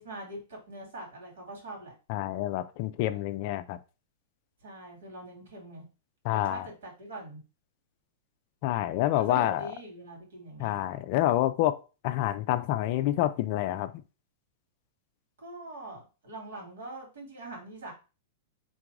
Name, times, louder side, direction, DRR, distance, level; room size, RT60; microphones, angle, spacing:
voice 1, 0.0-1.9 4.6-5.8 6.3-7.4 9.2-10.8 15.4-17.9, right 1 dB, 80° right, 2.7 m, -43 dB
voice 2, 2.1-3.8 6.2-6.7 8.6-9.7 10.6-11.8 12.0-13.9, left 13 dB, 45° left, 0.4 m, -28 dB
3.8 x 2.6 x 4.7 m
supercardioid pair, 160°, 0 cm